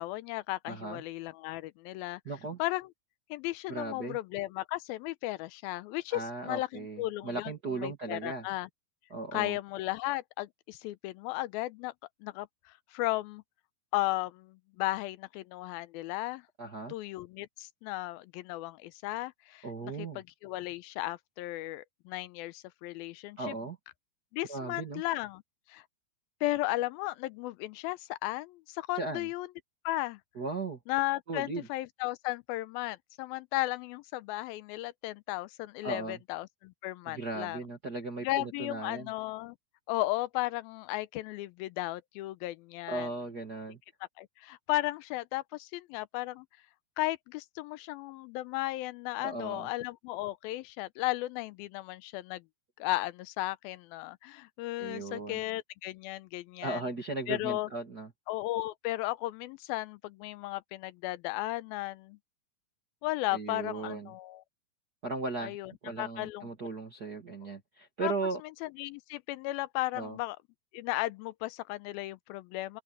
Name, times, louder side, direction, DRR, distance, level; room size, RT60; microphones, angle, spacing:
voice 1, 0.0-2.2 2.6-2.9 3.3-7.5 7.8-8.7 9.3-11.9 12.2-12.5 12.9-13.4 13.9-16.4 16.9-23.5 24.3-25.4 25.7-25.8 26.4-29.5 29.8-30.2 30.9-37.6 38.2-39.6 39.9-43.1 44.2-46.5 47.0-52.4 52.8-56.8 57.3-57.7 58.3-62.2 63.0-64.4 65.4-65.7 66.0-66.5 68.0-68.1 68.6-70.4 70.7-72.8, left 18 dB, 85° left, 2.4 m, -35 dB
voice 2, 0.7-1.0 2.2-2.6 3.7-4.2 6.1-8.5 9.1-9.6 16.6-16.9 19.6-20.2 23.4-23.8 24.5-25.0 28.9-29.3 30.3-30.8 31.3-31.7 35.8-36.2 37.0-39.1 42.9-43.8 49.2-49.7 54.8-55.4 56.6-58.1 63.3-64.1 65.0-65.6 65.8-68.4 69.9-70.2, right 3 dB, 35° right, 1.8 m, -37 dB
open air
omnidirectional pair, 4.3 m